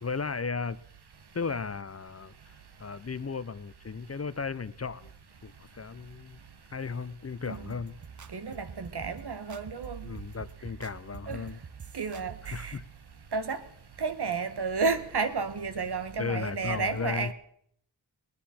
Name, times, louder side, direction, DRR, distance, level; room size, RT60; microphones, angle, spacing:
voice 1, 0.0-0.8 1.3-2.5 2.8-5.1 5.4-6.4 6.7-8.0 10.0-11.6 12.5-12.8 16.2-17.3, left 5 dB, 35° left, 0.6 m, -35 dB
sound 1, 7.5-12.8, right 7 dB, 45° right, 0.7 m, -46 dB
voice 2, 8.3-10.0 11.3-11.4 11.9-12.7 13.3-13.6 14.0-17.3, right 4 dB, 65° right, 1.2 m, -32 dB
20.5 x 9.8 x 4.3 m
wide cardioid pair, 55°, 42 cm